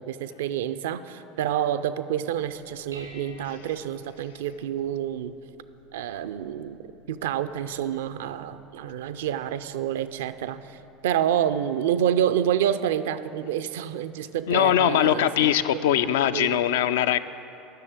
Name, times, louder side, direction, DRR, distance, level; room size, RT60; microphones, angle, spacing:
voice 1, 0.0-5.3 5.9-15.5 15.7-16.6, right 10 dB, 70° right, 12 dB, 0.4 m, -28 dB
Dishes pots and pans, 2.2-11.5, equal, 90° right, 1.6 m, -53 dB
voice 2, 14.5-17.2, left 11 dB, 65° left, 12 dB, 0.3 m, -21 dB
10.5 x 6.6 x 8.6 m, 2.9 s
figure-of-eight pair, 70°, 0 cm